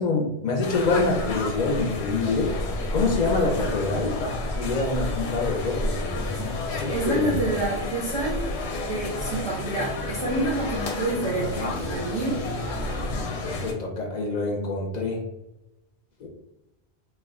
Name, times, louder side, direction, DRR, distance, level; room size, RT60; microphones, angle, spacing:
voice 1, 0.0-2.5 2.9-6.2 6.7-7.4 11.6-11.7 13.4-15.2 16.2-16.3, left 3 dB, 55° left, 0 dB, 0.5 m, -26 dB
sound 1, 0.6-13.7, left 2 dB, 90° left, 0.8 m, -31 dB
sound 2, 3.1-13.3, equal, 90° right, 0.9 m, -37 dB
voice 2, 6.9-8.4 8.8-12.4, right 2 dB, 35° right, -4 dB, 0.5 m, -28 dB
2.4 x 2.1 x 3.5 m, 0.91 s
omnidirectional pair, 1.1 m